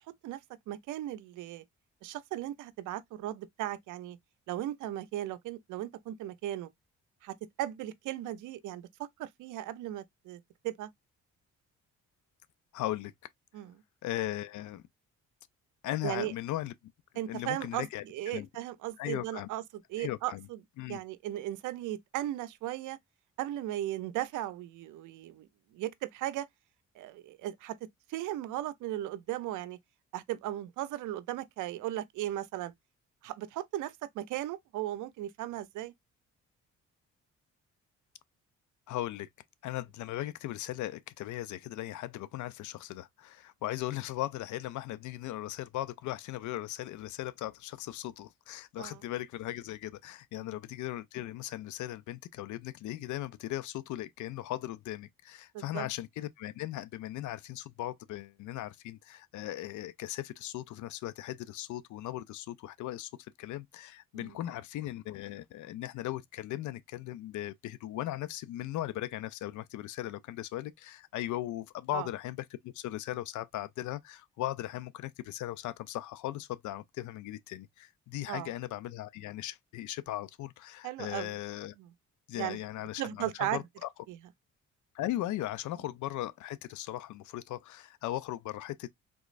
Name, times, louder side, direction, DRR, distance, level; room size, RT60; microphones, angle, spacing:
voice 1, 0.7-1.6 2.0-4.2 4.5-6.7 7.2-8.9 9.2-10.9 13.5-13.8 16.0-16.3 17.2-19.6 19.9-20.6 20.9-23.0 23.4-25.5 25.7-26.5 27.0-27.7 28.1-29.8 30.1-32.7 33.2-35.9 48.8-49.0 55.5-55.9 64.1-64.4 71.9-72.1 78.3-78.5 80.8-81.3 81.8-81.9 82.3-82.6 83.0-83.6 84.1-84.2, right 13 dB, 85° right, 0.6 m, -36 dB
voice 2, 12.7-13.1 14.0-14.8 15.8-16.7 17.3-18.5 19.0-19.5 20.0-20.5 20.8-21.0 38.9-39.3 39.6-81.7 82.3-83.9 84.9-88.9, left 14 dB, 75° left, 0.5 m, -38 dB
3.5 x 3.0 x 2.4 m
cardioid pair, 90°, 30 cm